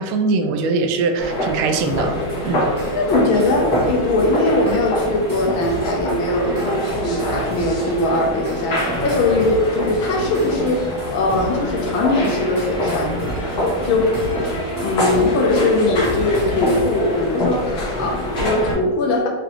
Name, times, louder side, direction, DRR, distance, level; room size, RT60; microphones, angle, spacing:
voice 1, 0.0-2.1 2.4-2.7, right 4 dB, 85° right, 6 dB, 1.4 m, -21 dB
sound 1, 1.2-18.7, left 1 dB, 55° left, 1.5 m, -25 dB
sound 2, 1.8-17.0, right 2 dB, 15° right, 0.7 m, -32 dB
voice 2, 2.9-6.6 6.9-13.2 13.5-13.6 13.8-14.1 14.8-19.3, left 2 dB, 75° left, 1 dB, 1.5 m, -20 dB
5.2 x 2.9 x 3.0 m, 1.3 s
omnidirectional pair, 2.2 m